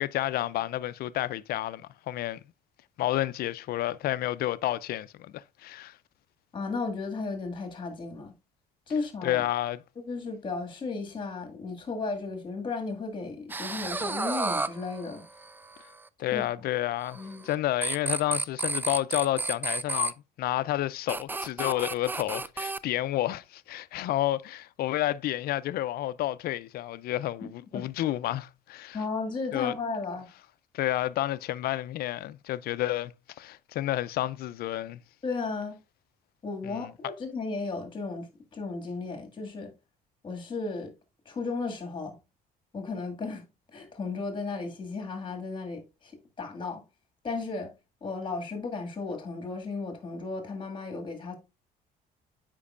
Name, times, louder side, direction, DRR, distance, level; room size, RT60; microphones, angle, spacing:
voice 1, 0.0-2.4 3.0-6.0 9.2-9.8 16.2-29.0 29.5-29.7 30.7-35.0 36.6-36.9, left 14 dB, 65° left, 0.4 m, -30 dB
voice 2, 6.5-8.3 8.9-9.4 10.0-15.2 16.3-16.5 17.1-17.5 27.7-27.9 28.9-30.3 35.2-35.8 36.4-39.7 40.2-40.9 41.3-42.1 42.7-43.5 43.7-46.1 46.4-46.8 47.2-47.7 48.0-51.3, left 4 dB, 30° left, 2.0 m, -34 dB
sound 1, 13.5-15.8 17.1-17.5 17.8-20.1 21.1-22.8, right 3 dB, 10° right, 0.3 m, -32 dB
8.4 x 5.2 x 2.5 m
cardioid pair, 110°, 17 cm